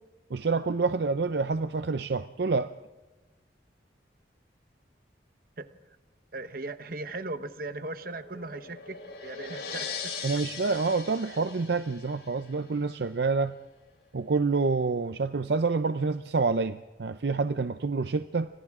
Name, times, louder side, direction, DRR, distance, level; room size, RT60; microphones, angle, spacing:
voice 1, 0.3-2.7 10.2-13.6 14.1-18.5, right 4 dB, 65° right, 11 dB, 0.6 m, -27 dB
voice 2, 6.3-10.3, right 2 dB, 50° right, 10 dB, 1.1 m, -38 dB
sound 1, 7.7-12.8, left 5 dB, 70° left, 5.7 m, -40 dB
29.5 x 25.5 x 3.7 m, 1.2 s
head